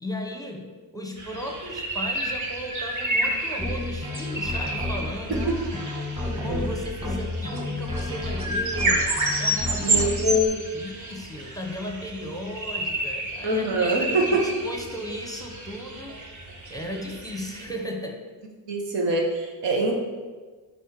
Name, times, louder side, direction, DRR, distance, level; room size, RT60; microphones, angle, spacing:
voice 1, 0.0-5.8 6.4-10.1 10.7-18.2, equal, 10° left, 3 dB, 0.7 m, -36 dB
sound 1, 1.2-17.6, right 2 dB, 45° right, 1.5 m, -30 dB
sound 2, 3.6-10.4, left 2 dB, 15° right, 1.5 m, -31 dB
voice 2, 6.2-6.7 9.8-10.6 13.4-14.4 18.7-20.0, right 1 dB, 90° right, 1 dB, 1.7 m, -24 dB
10.0 x 4.3 x 5.2 m, 1.4 s
cardioid pair, 160°, 42 cm